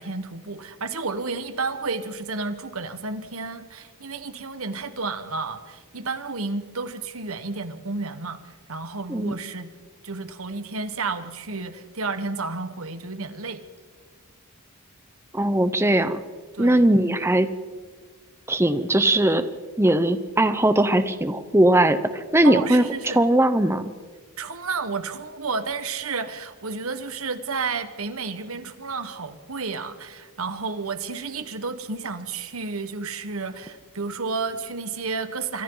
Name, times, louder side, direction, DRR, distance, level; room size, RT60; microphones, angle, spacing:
voice 1, 0.0-9.7 10.0-13.6 16.5-16.8 22.4-23.2 24.4-35.6, right 4 dB, 70° right, 10 dB, 1.5 m, -31 dB
voice 2, 15.3-16.2 16.6-17.5 18.5-19.5 19.8-22.8 23.1-23.9, right 1 dB, 10° right, 11 dB, 0.9 m, -19 dB
27.0 x 24.0 x 4.0 m, 1.5 s
head